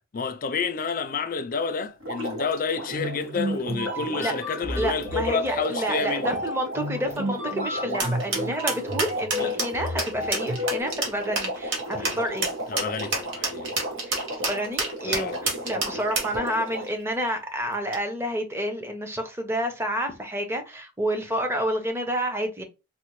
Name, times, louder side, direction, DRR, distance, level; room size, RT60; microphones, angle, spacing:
voice 1, 0.1-6.3 7.9-8.1 9.4-9.5 11.9-12.2 12.7-13.8 15.0-16.0, left 5 dB, 40° left, 0.4 m, -30 dB
Water, 2.0-17.0 17.9-18.0, right 1 dB, 85° right, 1.2 m, -35 dB
sound 1, 2.9-10.8, equal, 40° right, 0.9 m, -32 dB
voice 2, 4.8-12.5 14.0-22.6, equal, 10° right, 0.6 m, -29 dB
sound 2, 8.0-16.4, right 3 dB, 60° right, 1.2 m, -28 dB
4.1 x 2.1 x 3.0 m
head